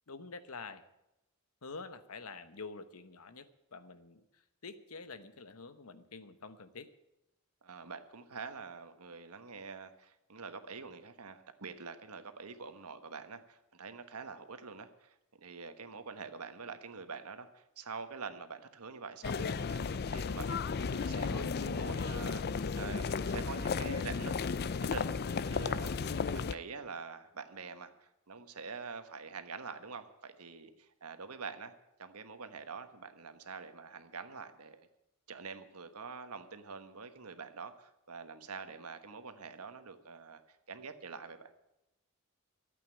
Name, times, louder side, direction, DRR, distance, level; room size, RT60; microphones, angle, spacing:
voice 1, 0.1-0.8 1.6-6.9, left 4 dB, 75° left, 12 dB, 1.1 m, -47 dB
voice 2, 7.6-15.1 15.4-24.3 24.8-25.1 25.5-31.7 32.0-34.9 35.3-40.4 40.7-41.5, right 5 dB, 90° right, 9 dB, 1.3 m, -46 dB
sound 1, 19.2-26.5, left 5 dB, 45° left, 0.5 m, -34 dB
13.0 x 8.4 x 9.9 m, 0.89 s
head